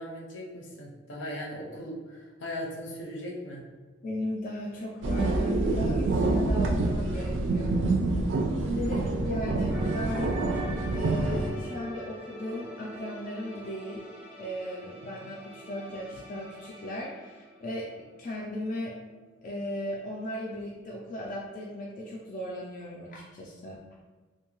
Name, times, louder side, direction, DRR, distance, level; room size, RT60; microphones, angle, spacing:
voice 1, 0.0-3.6, equal, 75° left, -2 dB, 0.6 m, -38 dB
voice 2, 4.0-7.8 8.5-10.4 10.9-14.0 14.4-19.0 19.4-23.8, left 1 dB, 45° left, -3 dB, 0.3 m, -36 dB
sound 1, 5.0-11.5, right 2 dB, 70° right, 0.3 m, -27 dB
sound 2, 9.7-18.4 18.6-18.9, right 1 dB, 10° right, 0.6 m, -42 dB
2.6 x 2.2 x 2.9 m, 1.3 s
head